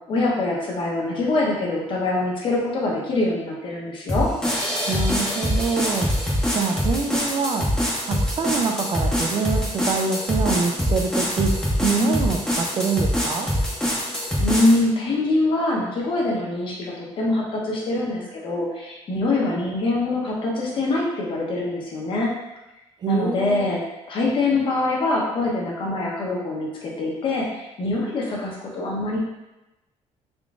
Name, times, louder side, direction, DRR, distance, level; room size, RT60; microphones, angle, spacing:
voice 1, 0.1-4.3 12.0-12.2 14.4-22.3 23.1-23.8 24.1-29.2, left 2 dB, 45° left, -3 dB, 0.9 m, -24 dB
sound 1, 4.1-14.8, equal, 5° left, 0.7 m, -24 dB
voice 2, 4.9-6.1 6.5-7.7 8.0-13.5 23.0-23.6, right 5 dB, 35° right, 4 dB, 0.3 m, -25 dB
3.7 x 3.6 x 2.4 m, 0.99 s
cardioid pair, 170°, 12 cm